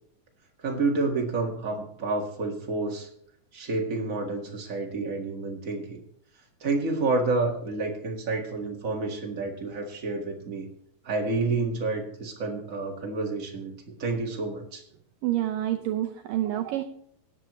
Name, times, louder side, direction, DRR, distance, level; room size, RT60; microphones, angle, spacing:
voice 1, 0.6-3.1 3.5-6.0 6.6-10.7 11.0-13.7 14.0-14.8, right 3 dB, 60° right, 1 dB, 0.8 m, -29 dB
voice 2, 15.2-16.9, right 13 dB, 80° right, 7 dB, 2.0 m, -28 dB
17.0 x 9.9 x 3.1 m, 0.70 s
omnidirectional pair, 4.5 m